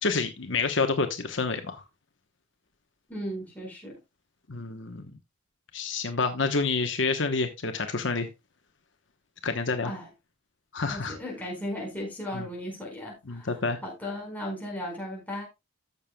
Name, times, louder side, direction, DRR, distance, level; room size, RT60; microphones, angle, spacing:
voice 1, 0.0-1.8 4.5-5.1 5.7-8.3 9.4-9.9 10.7-11.2 12.3-12.5 13.3-13.8, left 4 dB, 65° left, 1.1 m, -28 dB
voice 2, 3.1-3.9 9.8-10.1 10.9-13.5 13.8-15.5, equal, 10° left, 5.0 m, -36 dB
14.5 x 6.9 x 2.3 m
head